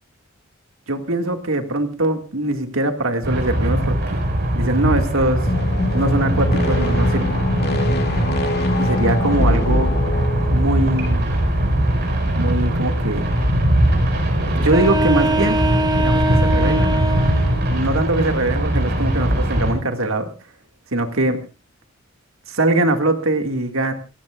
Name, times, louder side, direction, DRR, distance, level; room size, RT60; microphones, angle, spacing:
voice 1, 0.9-4.2 4.5-5.5 5.9-7.4 8.8-9.9 10.5-11.3 12.3-13.4 14.5-15.6 16.0-17.0 17.7-20.3 20.9-21.4 22.5-23.9, right 2 dB, 75° right, 6 dB, 2.1 m, -22 dB
sound 1, 3.2-19.7, right 1 dB, 55° right, 5.5 m, -20 dB
sound 2, 5.4-11.0, left 1 dB, 55° left, 2.5 m, -23 dB
sound 3, 14.6-17.6, right 1 dB, 20° right, 2.0 m, -22 dB
28.0 x 15.0 x 2.5 m, 0.31 s
head